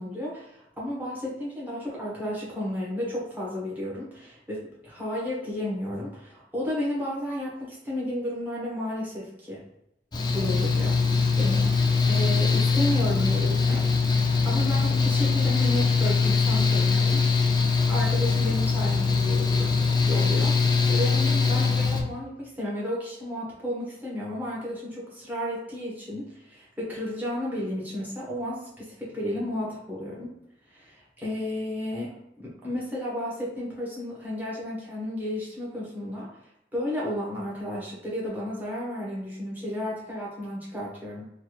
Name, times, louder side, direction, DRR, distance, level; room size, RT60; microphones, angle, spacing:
voice 1, 0.0-9.6 10.3-11.0 11.3-14.1 14.4-17.2 17.9-30.3 30.7-36.3 36.7-41.3, left 1 dB, 10° right, -7 dB, 1.0 m, -33 dB
Mechanical fan, 10.1-22.0, left 4 dB, 25° left, 0.4 m, -22 dB
3.3 x 2.3 x 2.9 m, 0.83 s
head